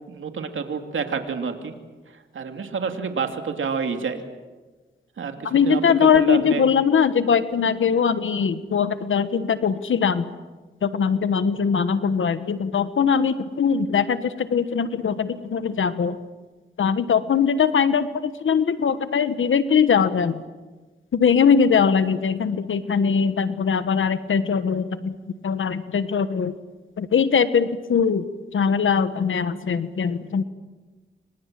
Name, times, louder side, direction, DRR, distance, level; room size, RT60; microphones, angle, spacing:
voice 1, 0.1-1.7 2.3-4.2 5.2-5.8 6.1-6.7, right 5 dB, 90° right, 6 dB, 2.7 m, -28 dB
voice 2, 5.4-10.3 10.8-16.2 16.8-20.4 21.1-25.2 25.4-26.5 27.0-28.2 28.5-30.4, left 6 dB, 90° left, 12 dB, 1.3 m, -21 dB
28.0 x 25.5 x 7.6 m, 1.3 s
cardioid pair, 50°, 20 cm